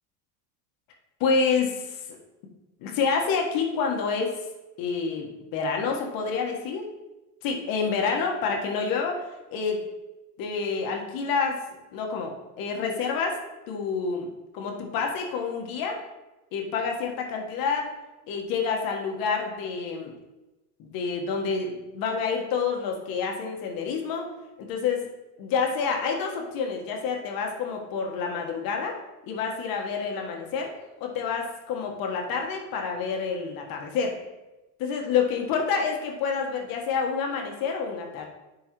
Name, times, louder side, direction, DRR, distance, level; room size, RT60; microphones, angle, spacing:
voice 1, 1.2-2.1 2.8-4.4 4.8-6.9 7.4-9.8 10.4-11.6 11.9-13.4 13.7-14.3 14.5-16.0 16.5-17.9 18.3-20.1 20.8-24.3 24.6-25.1 25.4-29.0 29.3-30.7 31.0-34.2 34.8-38.3, left 5 dB, 45° left, 1 dB, 1.4 m, -28 dB
10.5 x 3.9 x 3.0 m, 1.0 s
hypercardioid pair, 105°, 47 cm